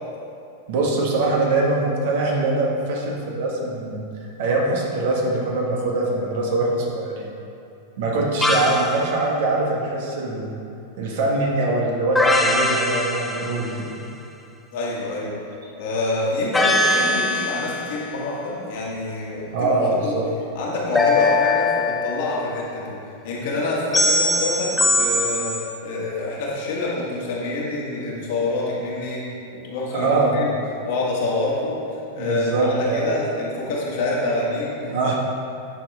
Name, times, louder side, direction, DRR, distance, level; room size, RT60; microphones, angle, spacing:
voice 1, 0.7-4.0 4.4-7.3 8.0-10.5 11.0-13.9 19.5-20.2 29.9-30.3 32.2-33.1 34.9-35.2, right 2 dB, 50° right, -2 dB, 1.5 m, -23 dB
sound 1, 8.4-9.0 12.2-13.9 16.5-18.0 20.9-22.4 23.9-25.7, left 2 dB, 5° left, 0.8 m, -21 dB
voice 2, 14.7-15.4 15.8-20.1 20.5-22.9 23.2-29.2 29.6-30.5 30.8-35.0, left 2 dB, 50° left, -5 dB, 2.0 m, -26 dB
10.5 x 6.4 x 3.5 m, 2.6 s
figure-of-eight pair, 90°, 0 cm